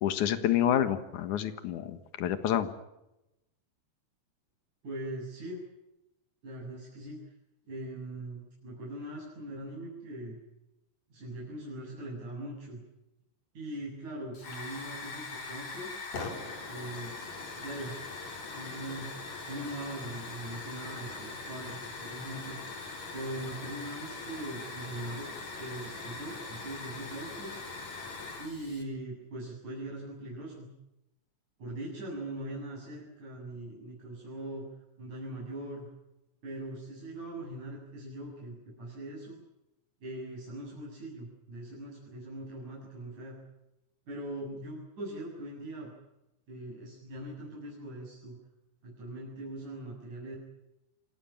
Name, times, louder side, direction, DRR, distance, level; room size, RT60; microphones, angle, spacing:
voice 1, 0.0-2.7, left 10 dB, 85° left, 10 dB, 3.0 m, -28 dB
voice 2, 4.8-5.6 6.4-7.2 7.7-10.4 11.1-12.8 13.5-15.9 16.6-17.1 17.6-18.0 18.5-19.1 19.5-22.6 23.1-25.3 25.6-27.5 28.4-30.7 31.6-34.6 35.0-35.8 36.4-39.4 40.0-43.4 44.1-45.9 46.5-48.4 48.8-50.4, right 1 dB, 80° right, -5 dB, 9.4 m, -41 dB
Hiss / Fire, 14.3-28.8, left 3 dB, 65° left, 5.5 m, -41 dB
27.5 x 19.5 x 8.9 m, 0.91 s
omnidirectional pair, 3.4 m